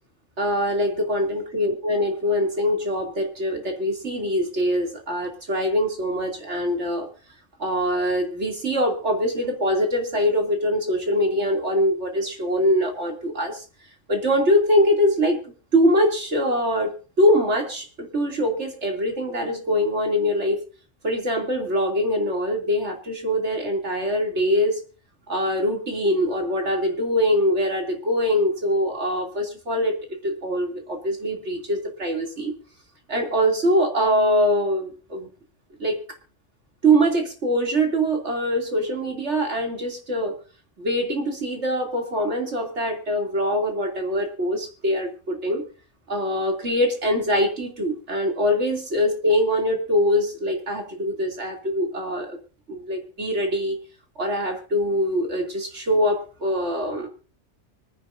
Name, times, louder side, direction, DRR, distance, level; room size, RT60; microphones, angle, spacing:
voice 1, 0.4-7.1 7.6-13.6 14.1-15.4 15.7-20.6 21.0-24.8 25.3-30.0 30.2-32.5 33.1-35.3 35.8-36.0 36.8-40.3 40.8-45.6 46.1-52.4 52.7-53.8 54.2-57.1, equal, 70° right, 3 dB, 3.2 m, -23 dB
25.0 x 10.5 x 2.6 m, 0.36 s
omnidirectional pair, 1.2 m